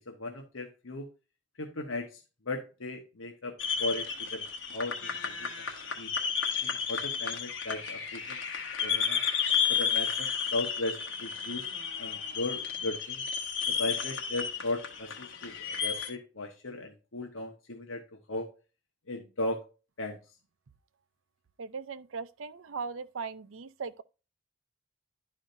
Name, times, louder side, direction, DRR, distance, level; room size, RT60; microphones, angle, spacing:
voice 1, 0.1-1.1 1.6-4.4 4.7-5.7 6.0-6.1 6.6-8.4 8.8-9.2 9.7-11.7 12.0-13.2 13.7-18.0 18.3-18.5 19.1-19.6 20.0-20.2, left 2 dB, 85° left, 1.3 m, -37 dB
sound 1, 3.6-16.1, left 7 dB, 70° left, 1.3 m, -32 dB
voice 2, 21.6-24.0, right 5 dB, 90° right, 0.6 m, -39 dB
11.5 x 5.0 x 2.6 m
head